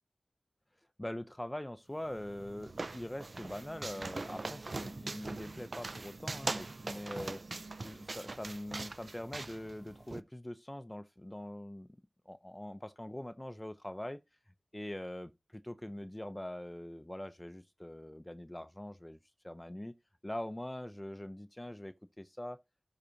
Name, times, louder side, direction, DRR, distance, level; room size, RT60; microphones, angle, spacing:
voice 1, 1.0-7.4 7.8-11.9 12.3-14.2 14.7-19.2 19.4-19.9 20.2-22.6, left 1 dB, 15° left, 0.5 m, -43 dB
sound 1, 2.0-10.2, right 3 dB, 60° right, 0.4 m, -42 dB
12.0 x 4.8 x 2.8 m
wide cardioid pair, 45°, 0 cm